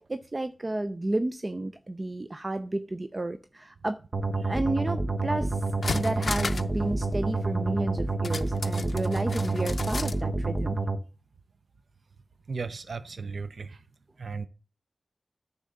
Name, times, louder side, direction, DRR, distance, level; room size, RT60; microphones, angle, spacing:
voice 1, 0.1-4.0 4.4-10.8, right 2 dB, 35° right, 0.5 m, -32 dB
sound 1, 4.1-11.0, right 3 dB, 50° right, 1.1 m, -28 dB
sound 2, 5.2-5.3 5.6-6.8 7.0-7.1 8.2-10.2 10.5-10.6, left 4 dB, 65° left, 0.5 m, -34 dB
voice 2, 12.5-13.8 14.2-14.5, right 4 dB, 75° right, 0.6 m, -36 dB
10.0 x 3.6 x 6.6 m
wide cardioid pair, 80°, 0 cm